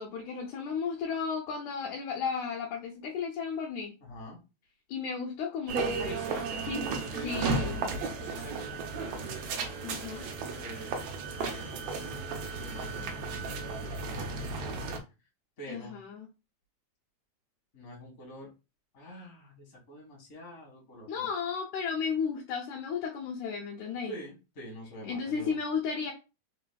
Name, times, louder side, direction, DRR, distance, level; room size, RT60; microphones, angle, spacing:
voice 1, 0.0-3.9 4.9-6.2 6.7-6.8 7.2-7.9 9.8-10.2 15.7-16.3 21.1-24.2 25.0-26.1, left 6 dB, 75° left, 0 dB, 2.2 m, -34 dB
voice 2, 4.0-4.4 6.1-7.9 8.2-9.4 10.0-11.1 11.4-12.4 12.6-15.0 15.6-16.0 17.7-18.5 18.9-21.3 24.1-25.6, equal, 35° left, -2 dB, 1.4 m, -46 dB
sound 1, 5.7-15.0, right 4 dB, 75° right, 1.5 m, -34 dB
4.4 x 4.1 x 2.3 m, 0.29 s
omnidirectional pair, 3.6 m